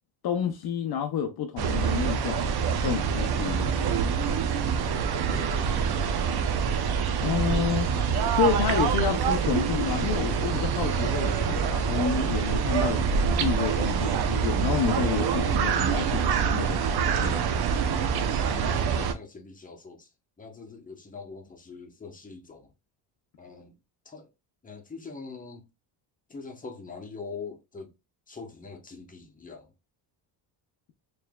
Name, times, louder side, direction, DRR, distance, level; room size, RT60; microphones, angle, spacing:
voice 1, 0.2-2.5 2.8-4.0 7.2-7.9 8.3-17.5, left 8 dB, 55° left, 0.6 m, -30 dB
sound 1, 1.6-19.1, right 6 dB, 55° right, 0.7 m, -26 dB
voice 2, 5.1-6.7 18.4-20.1 20.4-22.7 23.4-23.7 24.0-24.3 24.6-25.7 26.3-27.9 28.3-29.7, left 4 dB, 15° left, 1.0 m, -43 dB
4.4 x 3.3 x 2.3 m
cardioid pair, 125°, 46 cm